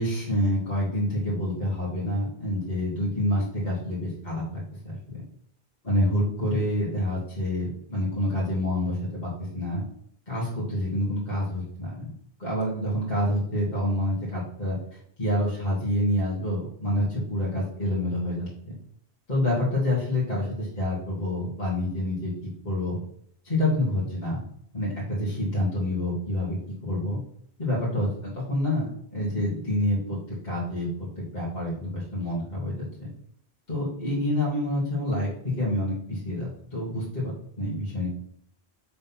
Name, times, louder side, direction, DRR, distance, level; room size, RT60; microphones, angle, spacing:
voice 1, 0.0-5.0 5.8-9.3 9.5-9.8 10.3-12.1 12.4-18.5 19.3-22.3 22.6-23.0 23.4-24.4 24.7-26.6 26.8-27.2 27.6-30.2 30.4-30.9 31.2-32.9 33.7-35.3 35.6-37.2 37.6-38.1, left 1 dB, 45° left, -7 dB, 2.6 m, -27 dB
6.7 x 4.1 x 5.6 m, 0.66 s
omnidirectional pair, 1.1 m